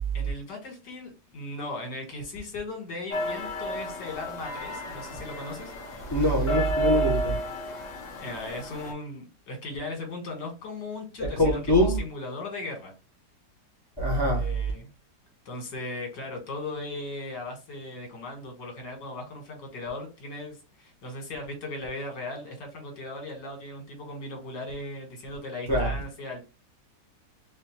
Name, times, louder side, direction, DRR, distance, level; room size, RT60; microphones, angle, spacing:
voice 1, 0.1-5.7 8.2-12.9 14.3-14.9 15.5-26.4, left 2 dB, 75° left, 2.0 m, -37 dB
sound 1, 3.1-8.9, equal, 50° left, 1.2 m, -32 dB
voice 2, 6.1-7.4 11.2-12.0 14.0-14.5 25.7-25.9, equal, 20° left, 0.6 m, -23 dB
4.5 x 2.6 x 2.8 m
omnidirectional pair, 1.9 m